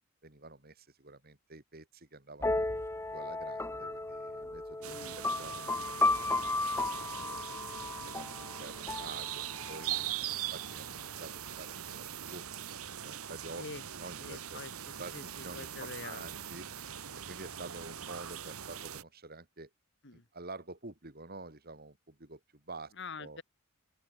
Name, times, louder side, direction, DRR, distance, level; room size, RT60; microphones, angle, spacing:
voice 1, 0.2-2.7 3.1-6.4 6.9-7.6 8.1-12.4 13.0-13.6 14.0-14.6 15.0-16.6 17.3-19.7 20.1-22.9 23.2-23.4, right 3 dB, 45° right, 3.0 m, -49 dB
sound 1, 2.4-10.0, left 2 dB, 10° left, 0.6 m, -34 dB
voice 2, 4.8-5.2 10.3-10.4 13.6-13.8 14.2-16.2 20.0-20.3 23.0-23.4, left 4 dB, 55° left, 2.7 m, -46 dB
sound 2, 4.8-19.0, right 10 dB, 85° right, 1.4 m, -41 dB
open air
head